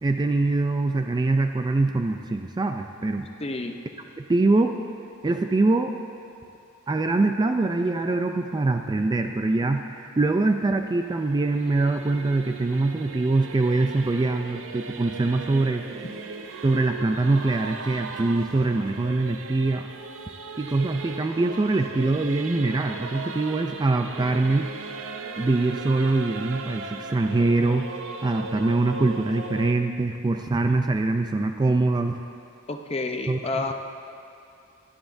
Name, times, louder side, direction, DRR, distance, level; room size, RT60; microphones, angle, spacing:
voice 1, 0.0-3.3 4.2-4.7 5.2-5.9 6.9-15.8 16.6-19.9 20.6-24.7 25.4-27.9 28.2-32.2 33.3-33.6, right 2 dB, 20° right, 5 dB, 0.3 m, -23 dB
voice 2, 3.4-3.8 32.7-33.7, left 2 dB, 30° left, 4 dB, 0.6 m, -29 dB
Singing / Musical instrument, 10.3-29.7, right 4 dB, 65° right, 0.6 m, -38 dB
16.5 x 11.5 x 2.6 m, 2.6 s
head